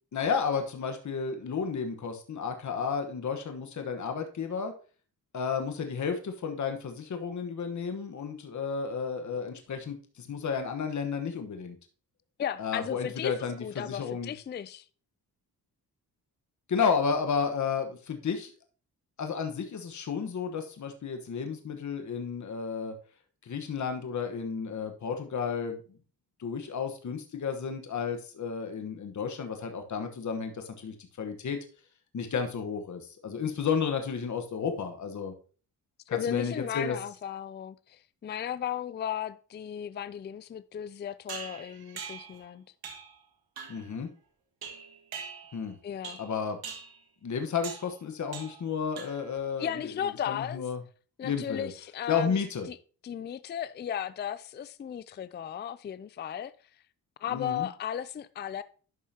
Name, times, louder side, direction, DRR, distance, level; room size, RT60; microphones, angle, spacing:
voice 1, 0.1-4.7 5.3-11.8 12.6-14.3 16.7-18.5 19.2-22.9 23.4-25.8 26.4-31.6 32.1-35.3 36.1-37.0 43.7-44.1 45.5-45.8 46.2-46.6 47.2-49.9 50.3-50.8 51.2-51.7 52.1-52.7 57.3-57.7, left 6 dB, 50° left, 1.2 m, -32 dB
voice 2, 12.4-13.3 13.6-14.9 36.1-42.6 45.8-46.2 49.6-50.6 51.2-52.4 52.7-52.8 53.0-56.5 57.2-58.6, left 9 dB, 30° left, 0.4 m, -35 dB
sound 1, 41.3-42.4 42.8-43.2 43.6-43.9 44.6-45.7 46.0-46.3 46.6-47.0 47.6-47.9 48.3-48.7 49.0-49.4, right 6 dB, 70° right, 1.5 m, -42 dB
11.0 x 5.6 x 2.8 m
cardioid pair, 80°, 38 cm